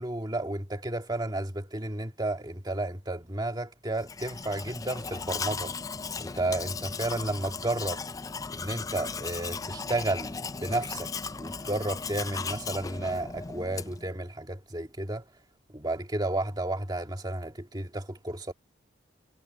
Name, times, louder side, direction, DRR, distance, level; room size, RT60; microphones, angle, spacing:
voice 1, 0.0-5.8 6.2-8.0 8.5-11.1 11.4-15.2 15.7-18.5, right 2 dB, 20° right, 1.9 m, -32 dB
Domestic sounds home sounds, 4.0-14.1, left 5 dB, 20° left, 0.3 m, -37 dB
head